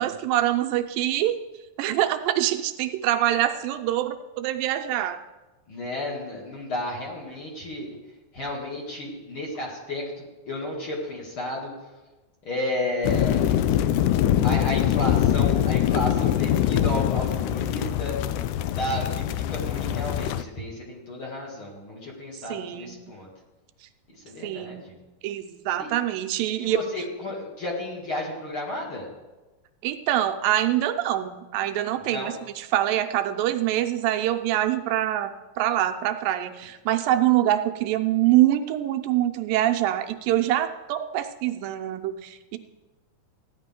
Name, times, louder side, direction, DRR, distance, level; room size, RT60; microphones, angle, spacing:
voice 1, 0.0-1.4 1.8-5.2 22.5-23.0 24.4-24.9 25.2-26.8 29.8-35.3 35.6-42.6, right 13 dB, 85° right, 7 dB, 2.3 m, -25 dB
voice 2, 5.7-7.9 8.3-10.1 10.5-11.7 12.4-13.6 14.4-18.2 18.8-23.3 24.1-25.0 25.8-25.9 26.6-29.1 32.0-32.4, left 1 dB, 40° left, -3 dB, 2.5 m, -32 dB
sound 1, 13.0-20.4, left 11 dB, 85° left, 1.7 m, -23 dB
15.5 x 10.0 x 3.7 m, 1.1 s
omnidirectional pair, 4.0 m